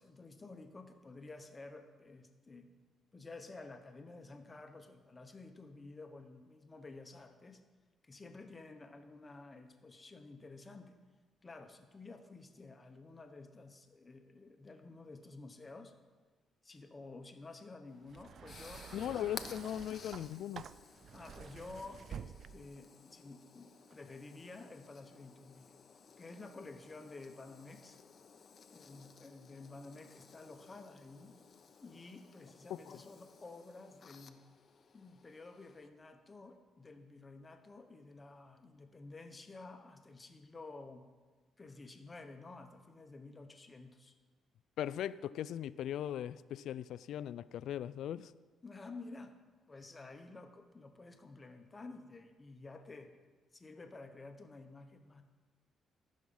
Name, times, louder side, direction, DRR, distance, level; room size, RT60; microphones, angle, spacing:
voice 1, 0.0-2.7 3.1-7.6 8.0-10.9 11.4-15.9 16.6-19.5 21.1-25.7 26.2-28.0 28.7-31.4 31.8-34.4 34.9-41.0 41.6-44.1 48.6-49.3 49.7-53.1 53.5-55.2, left 3 dB, 25° left, 6 dB, 1.1 m, -52 dB
sound 1, 17.9-35.9, left 5 dB, 45° left, 0.8 m, -56 dB
sound 2, 18.1-22.8 23.8-24.0, right 8 dB, 55° right, 0.3 m, -50 dB
voice 2, 18.9-20.7 32.7-33.0 44.8-48.3, left 11 dB, 75° left, 18 dB, 0.3 m, -39 dB
14.0 x 6.4 x 5.6 m, 1.4 s
cardioid pair, 90°, 0 cm